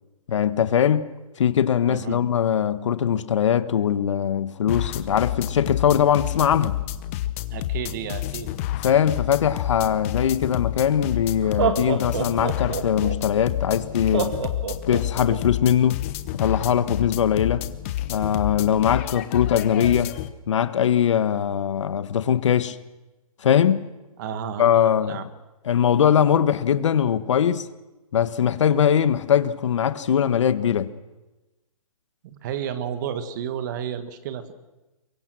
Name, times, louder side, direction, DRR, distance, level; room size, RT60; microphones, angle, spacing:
voice 1, 0.3-1.1 1.4-6.8 8.8-14.3 14.9-16.0 16.3-17.7 18.1-20.1 20.5-22.8 23.4-23.9 24.6-25.2 25.6-27.7 28.1-30.9, left 9 dB, 55° left, 1.3 m, -21 dB
voice 2, 1.9-2.2 7.5-8.5 24.2-25.2 32.2-34.5, right 9 dB, 30° right, 1.6 m, -32 dB
sound 1, 4.7-20.3, left 13 dB, 25° left, 0.9 m, -30 dB
Laughter, 10.7-10.8 11.4-13.1 14.1-15.4, right 7 dB, 45° right, 2.3 m, -26 dB
23.5 x 22.5 x 6.2 m
hypercardioid pair, 160°, 19 cm